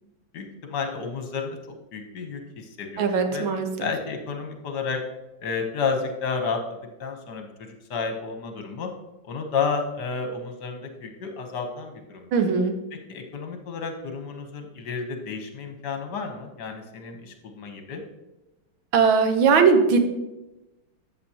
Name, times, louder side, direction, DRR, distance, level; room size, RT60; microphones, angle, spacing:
voice 1, 0.3-1.6 1.9-3.4 3.8-5.0 5.4-6.6 7.0-8.9 9.3-12.3 13.1-18.0, left 5 dB, 60° left, 4 dB, 1.6 m, -31 dB
voice 2, 3.0-3.7 12.3-12.7 18.9-20.0, right 5 dB, 90° right, 6 dB, 1.8 m, -19 dB
12.5 x 7.5 x 2.9 m, 1.0 s
omnidirectional pair, 2.1 m